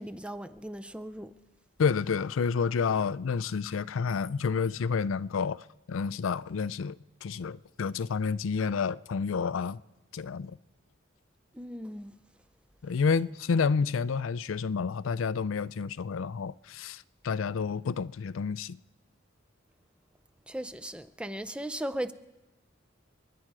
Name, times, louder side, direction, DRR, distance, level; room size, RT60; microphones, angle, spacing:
voice 1, 0.0-1.3 11.5-12.1 20.5-22.1, right 1 dB, 5° right, 0.5 m, -37 dB
voice 2, 1.8-5.6 5.9-9.8 10.1-10.6 12.8-18.8, left 5 dB, 90° left, 0.4 m, -29 dB
29.0 x 10.0 x 4.8 m
head